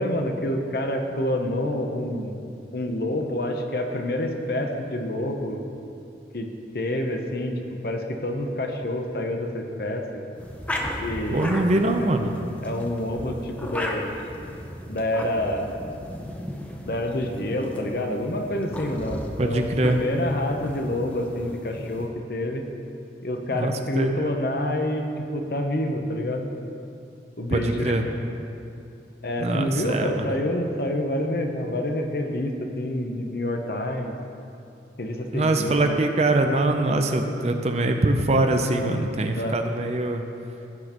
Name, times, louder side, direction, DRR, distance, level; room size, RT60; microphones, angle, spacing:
voice 1, 0.0-2.4 2.7-5.6 6.3-6.5 6.7-7.5 7.8-10.2 11.0-11.5 12.6-14.2 14.9-15.8 16.8-22.6 23.2-25.1 25.3-26.5 27.4-28.1 29.2-34.1 35.0-35.8 39.3-39.6, left 1 dB, 55° left, 4 dB, 0.8 m, -27 dB
sound 1, 10.3-22.1, equal, 10° left, 0.6 m, -36 dB
voice 2, 11.3-12.3 19.4-20.0 23.5-24.1 27.5-28.0 29.4-30.3 35.3-40.2, right 2 dB, 35° right, 5 dB, 0.5 m, -23 dB
15.5 x 6.3 x 3.0 m, 2.6 s
head